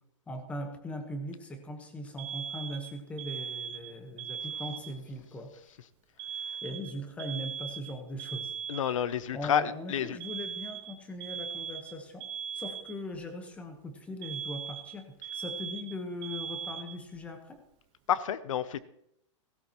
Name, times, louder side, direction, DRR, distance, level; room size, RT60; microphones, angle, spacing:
voice 1, 0.3-5.8 6.6-8.5 9.3-12.3 12.5-17.6, left 1 dB, 10° left, 6 dB, 1.1 m, -40 dB
Alarm, 2.2-5.1 6.2-9.2 10.2-13.2 14.2-17.2, right 7 dB, 25° right, 1.1 m, -39 dB
voice 2, 8.7-10.2 18.1-18.8, left 9 dB, 80° left, 16 dB, 0.7 m, -29 dB
17.0 x 13.0 x 3.0 m, 0.75 s
hypercardioid pair, 165°, 17 cm